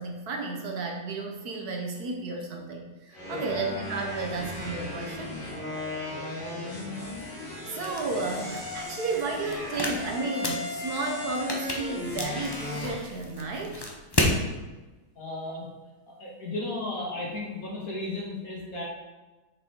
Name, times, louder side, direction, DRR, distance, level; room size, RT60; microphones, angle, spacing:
voice 1, 0.0-5.3 7.7-13.9, right 3 dB, 65° right, 2 dB, 1.4 m, -33 dB
sound 1, 3.1-13.0, left 2 dB, 70° left, 2.6 m, -36 dB
sound 2, 7.7-14.4, left 1 dB, 25° left, 0.5 m, -33 dB
voice 2, 15.2-15.7 16.1-18.8, left 2 dB, 50° left, -3 dB, 2.1 m, -35 dB
6.6 x 5.2 x 4.5 m, 1.2 s
omnidirectional pair, 1.9 m